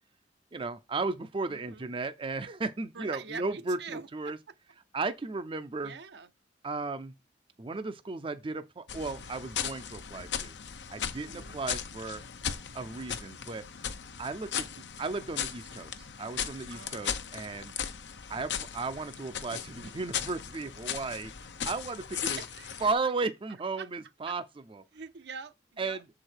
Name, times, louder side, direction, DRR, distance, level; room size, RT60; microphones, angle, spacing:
voice 1, 0.5-4.4 4.9-5.9 6.6-7.1 7.6-10.5 10.9-12.3 12.7-13.6 14.2-17.7 18.3-22.4 22.8-24.4 24.7-24.8 25.8-26.0, right 3 dB, 30° right, 0.5 m, -35 dB
voice 2, 1.5-1.9 2.9-4.4 5.8-6.3 11.2-11.6 16.7-17.1 22.4-22.8 23.8-23.9 24.3-24.4 24.9-26.0, right 5 dB, 70° right, 0.7 m, -44 dB
sound 1, 8.9-22.9, left 8 dB, 80° left, 0.8 m, -37 dB
7.0 x 4.8 x 4.5 m
head